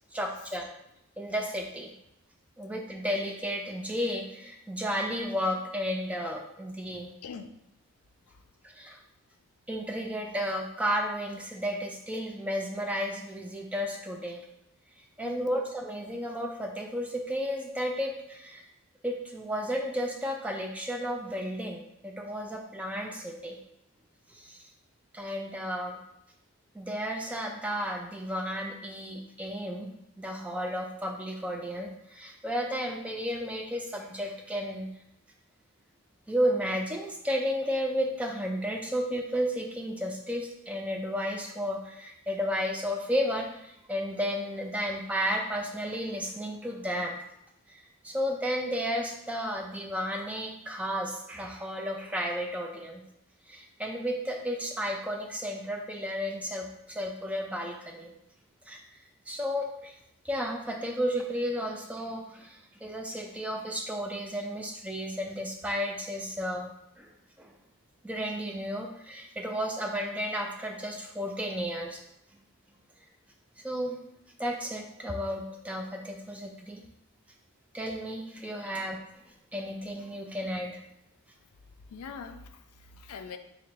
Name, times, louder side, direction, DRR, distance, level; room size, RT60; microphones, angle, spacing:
voice 1, 0.1-0.7 1.2-1.9 2.6-7.1 8.7-9.0 9.7-14.4 15.2-18.7 19.0-23.6 24.3-24.6 25.1-26.0 26.7-29.9 30.2-34.9 36.3-47.2 47.7-53.0 53.5-58.1 58.7-58.8 59.3-60.0 60.2-66.7 67.0-67.1 67.4-67.5 68.0-72.0 73.6-74.0 74.4-76.8 77.7-79.0 79.5-80.8, equal, 5° right, 1 dB, 0.3 m, -33 dB
voice 2, 7.2-7.5 8.3-8.4 15.2-15.5 81.9-83.4, left 5 dB, 85° left, 8 dB, 0.4 m, -43 dB
3.8 x 2.1 x 4.4 m, 0.80 s
head